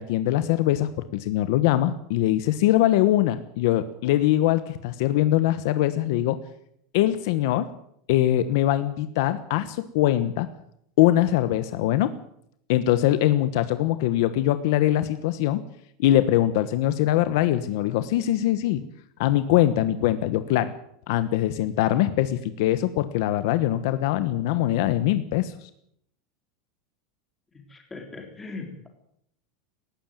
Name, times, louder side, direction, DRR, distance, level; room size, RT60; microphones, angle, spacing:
voice 1, 0.0-6.4 6.9-7.7 8.1-10.5 11.0-12.1 12.7-15.6 16.0-18.8 19.2-20.7 21.1-25.7, left 13 dB, 55° left, 12 dB, 1.2 m, -22 dB
voice 2, 27.5-28.9, left 3 dB, 10° left, 3 dB, 3.8 m, -39 dB
19.0 x 15.0 x 9.2 m, 0.72 s
supercardioid pair, 175°, 2 cm